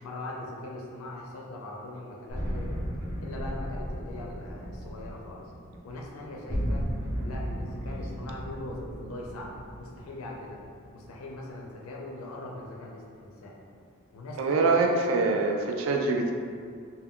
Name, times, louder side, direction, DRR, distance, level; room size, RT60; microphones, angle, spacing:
voice 1, 0.0-2.8 3.2-5.5 5.8-6.9 7.2-10.6 10.9-13.6 14.1-15.0, left 2 dB, 75° left, -2 dB, 0.4 m, -41 dB
sound 1, 2.3-11.2, equal, 5° right, 0.7 m, -35 dB
voice 2, 14.4-16.3, right 3 dB, 70° right, 3 dB, 0.3 m, -24 dB
2.2 x 2.1 x 3.5 m, 2.2 s
head